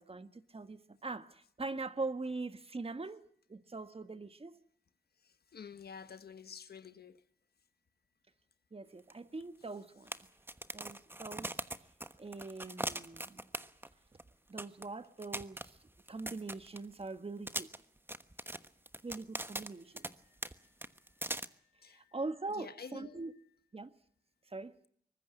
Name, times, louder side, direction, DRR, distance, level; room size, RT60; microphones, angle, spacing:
voice 1, 0.0-3.2 3.5-4.6 8.7-10.1 10.7-11.6 12.2-13.5 14.5-15.8 16.1-17.7 19.0-20.1 21.8-23.3 23.7-23.9 24.5-24.7, right 3 dB, 35° right, 1.6 m, -42 dB
voice 2, 5.2-7.2 20.6-20.7 21.8-22.1 22.5-23.2, left 6 dB, 75° left, 1.4 m, -50 dB
sound 1, 9.1-9.2 9.4-9.5 10.1-13.9 14.2-14.3 14.6-14.8 15.2-17.0 17.5-20.1 20.4-20.5 20.8-21.4, right 1 dB, 15° right, 1.2 m, -40 dB
24.0 x 20.0 x 7.8 m
cardioid pair, 65°, 16 cm